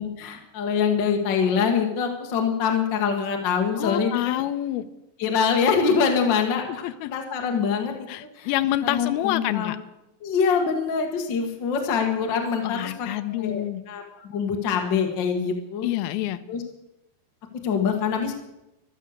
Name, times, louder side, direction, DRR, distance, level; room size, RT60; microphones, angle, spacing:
voice 1, 0.0-4.4 5.2-6.6 7.1-7.9 8.3-8.5 8.8-9.7 10.2-15.9 16.5-16.6 17.6-18.4, left 6 dB, 60° left, 3 dB, 1.2 m, -24 dB
voice 2, 3.8-4.9 6.7-7.1 8.1-9.8 12.6-13.8 15.8-16.4, left 14 dB, 80° left, 11 dB, 2.4 m, -27 dB
14.0 x 12.0 x 6.6 m, 0.89 s
omnidirectional pair, 4.6 m